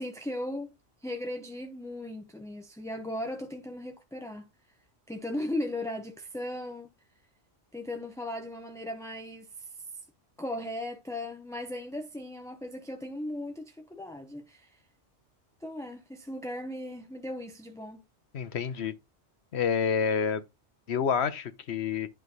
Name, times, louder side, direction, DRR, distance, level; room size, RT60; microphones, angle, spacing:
voice 1, 0.0-4.5 5.1-6.9 7.7-9.9 10.4-14.8 15.6-18.0, left 1 dB, 5° left, 0.7 m, -37 dB
voice 2, 18.3-18.9 19.5-20.4 20.9-22.1, left 6 dB, 70° left, 1.2 m, -28 dB
11.0 x 3.8 x 3.9 m
omnidirectional pair, 1.2 m